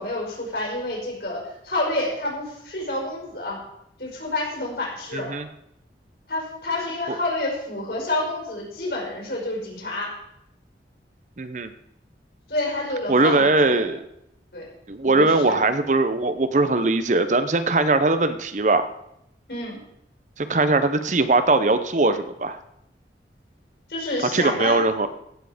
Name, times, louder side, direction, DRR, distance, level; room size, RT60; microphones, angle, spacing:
voice 1, 0.0-3.6 4.0-5.4 6.3-10.1 12.5-13.9 14.5-14.6 15.0-15.6 19.5-19.8 23.9-24.8, left 2 dB, 65° left, -2 dB, 5.5 m, -29 dB
voice 2, 5.1-5.5 11.4-11.7 13.1-14.0 14.9-18.9 20.4-22.6 24.3-25.1, right 2 dB, 45° right, 11 dB, 0.7 m, -20 dB
16.0 x 7.5 x 5.0 m, 0.78 s
head